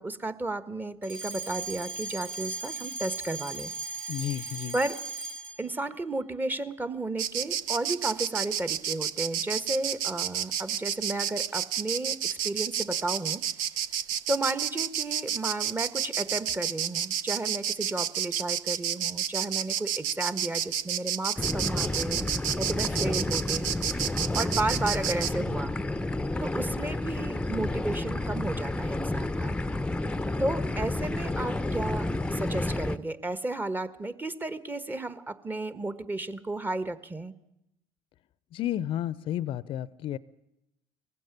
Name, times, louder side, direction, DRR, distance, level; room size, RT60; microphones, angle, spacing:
voice 1, 0.0-3.7 4.7-5.0 5.6-12.2 12.4-13.4 14.3-22.3 22.6-23.7 24.3-25.8 26.4-29.6 30.4-37.3, right 2 dB, 20° right, 13 dB, 1.4 m, -33 dB
Alarm, 1.0-5.7, right 3 dB, 55° right, 2.6 m, -37 dB
voice 2, 4.1-4.8 38.5-40.2, left 12 dB, 55° left, 19 dB, 0.7 m, -32 dB
Insect, 7.2-25.3, right 9 dB, 75° right, 0.8 m, -30 dB
sound 1, 21.4-33.0, left 2 dB, 10° left, 0.8 m, -30 dB
19.5 x 15.5 x 10.0 m, 0.85 s
hypercardioid pair, 70°, 11 cm